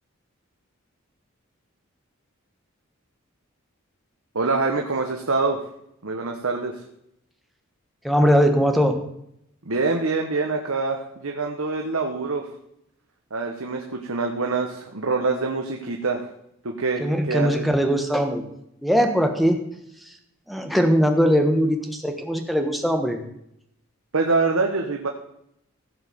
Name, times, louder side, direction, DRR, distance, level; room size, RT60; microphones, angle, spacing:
voice 1, 4.3-5.6 6.0-6.8 9.6-12.5 13.3-16.3 16.6-17.6 24.1-25.1, right 3 dB, 80° right, 3 dB, 1.1 m, -25 dB
voice 2, 8.0-9.0 17.0-18.4 18.8-19.6 20.5-23.2, equal, ahead, 4 dB, 1.3 m, -20 dB
15.5 x 5.4 x 6.9 m, 0.76 s
head